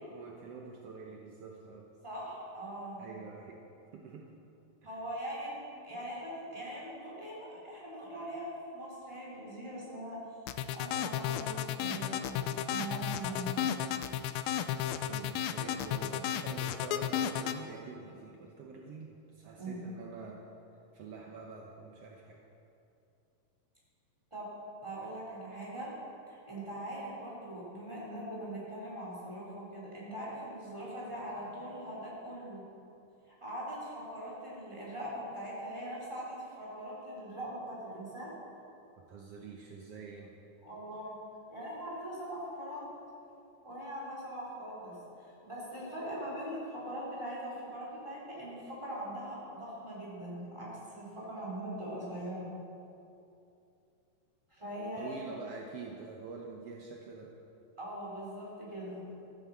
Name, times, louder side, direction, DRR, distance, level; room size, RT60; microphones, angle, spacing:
voice 1, 0.0-1.9 3.0-3.6 3.9-4.3 4.8-5.0 14.8-20.4 20.9-22.4 39.0-40.4 55.0-57.4, right 5 dB, 70° right, 0 dB, 1.4 m, -46 dB
voice 2, 2.0-3.1 4.8-10.2 10.7-13.7 19.6-19.8 24.3-24.5 24.8-25.9 26.3-32.6 33.3-38.3 40.6-41.1 41.5-42.9 43.6-52.5 54.5-55.2 57.8-59.0, right 1 dB, 10° right, -6 dB, 4.3 m, -41 dB
sound 1, 10.5-17.6, left 10 dB, 90° left, 2.5 m, -33 dB
14.0 x 11.0 x 7.5 m, 2.7 s
omnidirectional pair, 4.2 m